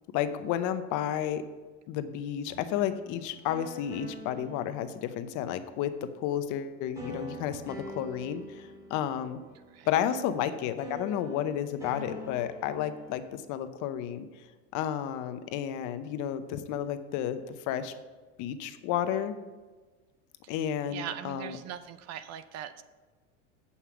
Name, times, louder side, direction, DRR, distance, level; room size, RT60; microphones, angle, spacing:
voice 1, 0.1-1.4 1.9-9.4 9.9-14.3 14.7-17.4 17.7-17.9 18.4-19.3 20.5-21.6, left 10 dB, 55° left, 10 dB, 0.8 m, -32 dB
sound 1, 2.5-5.6 7.0-10.5 10.8-13.3, equal, 10° right, 2.9 m, -45 dB
voice 2, 20.4-22.8, right 10 dB, 45° right, 13 dB, 0.6 m, -41 dB
8.4 x 5.6 x 5.9 m, 1.3 s
supercardioid pair, 115°, 37 cm